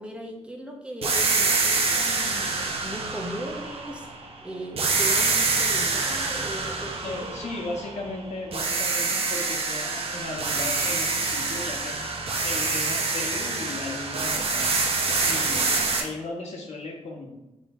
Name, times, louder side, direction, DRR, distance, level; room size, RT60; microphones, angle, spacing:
voice 1, 0.0-4.1 4.4-7.2 15.2-15.8, equal, 10° right, 1 dB, 0.8 m, -37 dB
sound 1, 1.0-4.3 4.8-8.1 8.5-16.0, right 4 dB, 60° right, 0.8 m, -26 dB
voice 2, 7.0-12.0 12.4-14.9 15.3-17.4, left 2 dB, 85° left, 0 dB, 1.3 m, -36 dB
6.6 x 3.8 x 3.8 m, 0.95 s
wide cardioid pair, 145°, 11 cm